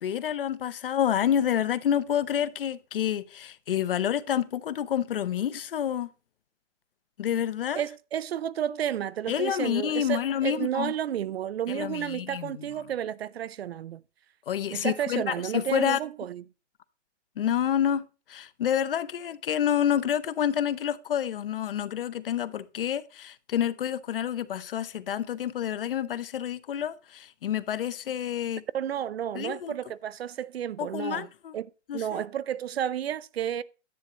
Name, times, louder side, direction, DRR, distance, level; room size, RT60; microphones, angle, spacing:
voice 1, 0.0-6.1 7.2-7.8 9.3-10.9 11.7-12.7 14.5-16.0 17.4-28.6 29.3-29.7 30.8-31.6 31.9-32.2, left 10 dB, 50° left, 0.7 m, -28 dB
voice 2, 7.8-14.0 14.7-16.4 28.7-31.3 31.5-33.6, right 10 dB, 60° right, 0.5 m, -31 dB
10.5 x 9.5 x 3.1 m
hypercardioid pair, 170°, 35 cm